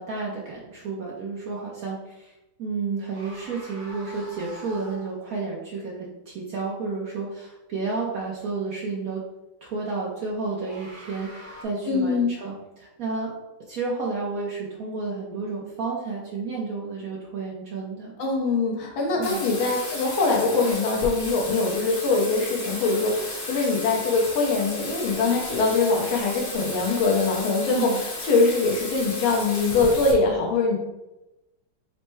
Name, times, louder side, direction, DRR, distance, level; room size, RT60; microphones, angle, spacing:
voice 1, 0.0-2.3 2.6-9.2 9.6-13.3 13.7-18.1 19.2-19.4 27.7-28.0, right 4 dB, 85° right, -4 dB, 0.7 m, -31 dB
sound 1, 3.0-5.2 10.4-11.6, right 1 dB, 45° right, 0.6 m, -44 dB
voice 2, 11.9-12.3 18.2-30.8, left 3 dB, 70° left, -1 dB, 1.5 m, -23 dB
Bathtub (filling or washing), 19.2-30.1, left 2 dB, 50° left, 1.3 m, -34 dB
4.4 x 2.1 x 4.4 m, 0.97 s
omnidirectional pair, 2.4 m